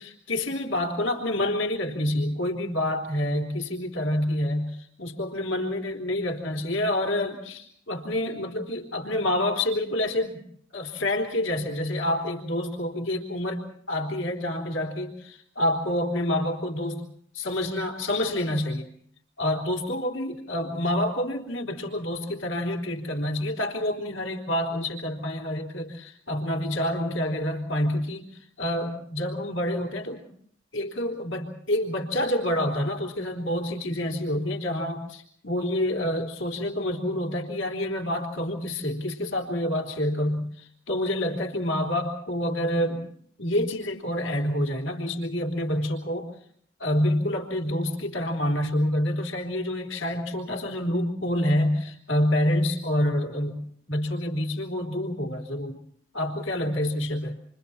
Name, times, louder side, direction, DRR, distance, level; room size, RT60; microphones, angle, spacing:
voice 1, 0.0-10.4 10.7-17.0 17.3-18.9 19.4-28.3 28.6-30.2 30.7-43.1 43.4-46.3 46.8-53.6 53.9-55.8 56.1-57.4, left 1 dB, 85° left, 2 dB, 3.6 m, -27 dB
29.0 x 24.5 x 4.3 m, 0.62 s
head